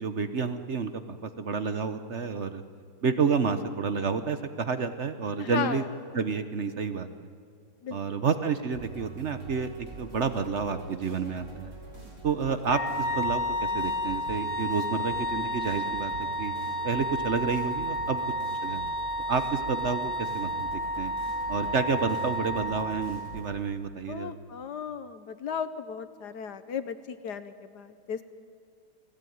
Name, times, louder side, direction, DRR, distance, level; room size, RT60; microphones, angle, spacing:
voice 1, 0.0-2.6 3.0-5.8 6.1-7.1 7.9-11.7 12.2-16.1 16.4-16.5 16.8-18.2 18.6-18.8 19.3-21.1 21.5-24.3, right 5 dB, 55° right, 9 dB, 0.8 m, -30 dB
voice 2, 5.4-5.8 7.8-8.2 24.1-28.2, left 7 dB, 60° left, 11 dB, 1.3 m, -35 dB
sound 1, 8.7-23.5, right 4 dB, 75° right, 5.5 m, -45 dB
Wind instrument woodwind instrument, 12.7-23.4, equal, 25° left, 3.3 m, -31 dB
29.5 x 18.0 x 9.3 m, 2.2 s
omnidirectional pair, 2.4 m